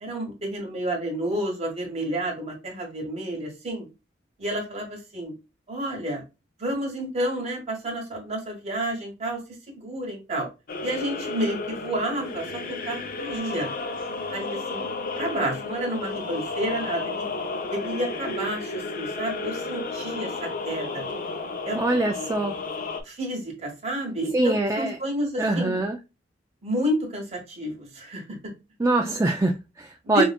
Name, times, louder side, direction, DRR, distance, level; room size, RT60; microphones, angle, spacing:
voice 1, 0.0-3.8 4.4-5.3 5.7-6.2 6.6-9.4 9.7-10.5 10.8-13.7 14.3-14.8 15.1-17.2 17.7-21.0 21.6-21.9 23.0-25.8 26.6-28.2 30.0-30.2, right 1 dB, 35° right, 1.5 m, -30 dB
sound 1, 10.7-23.0, left 3 dB, 50° left, 0.5 m, -32 dB
voice 2, 21.7-22.6 24.3-25.0 25.4-26.0 28.8-30.2, right 2 dB, 15° right, 0.3 m, -23 dB
5.1 x 2.4 x 2.2 m
head